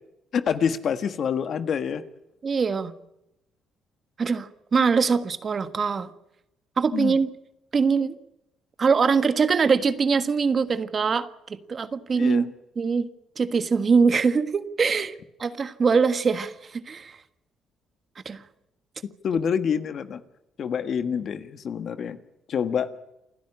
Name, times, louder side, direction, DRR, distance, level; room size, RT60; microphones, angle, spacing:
voice 1, 0.3-2.0 6.9-7.2 12.2-12.5 19.2-20.2 20.6-22.2 22.5-22.9, left 7 dB, 55° left, 11 dB, 1.5 m, -26 dB
voice 2, 2.4-2.9 4.2-6.1 6.8-7.3 7.7-8.2 8.8-12.4 12.8-13.1 13.4-15.1 15.4-17.2 18.2-18.4, right 5 dB, 40° right, 11 dB, 1.5 m, -23 dB
28.5 x 10.5 x 9.9 m, 0.88 s
cardioid pair, 95°, 0 cm